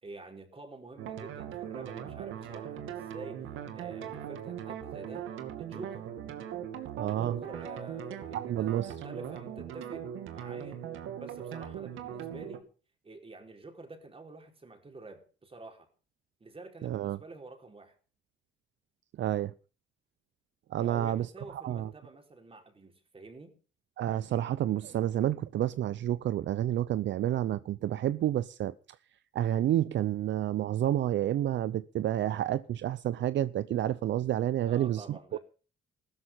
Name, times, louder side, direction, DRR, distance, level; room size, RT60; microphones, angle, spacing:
voice 1, 0.0-3.4 3.7-5.3 5.6-6.1 7.1-10.8 11.2-12.7 13.0-15.9 16.4-17.9 20.8-23.5 34.6-35.4, right 3 dB, 30° right, 4.7 m, -48 dB
sound 1, 1.0-12.6, right 9 dB, 85° right, 2.4 m, -40 dB
voice 2, 7.0-7.4 8.3-8.9 16.8-17.2 19.2-19.5 20.7-21.3 21.5-21.9 24.0-28.7 29.3-35.0, right 12 dB, 65° right, 0.7 m, -29 dB
16.0 x 13.0 x 5.8 m
cardioid pair, 90°, 20 cm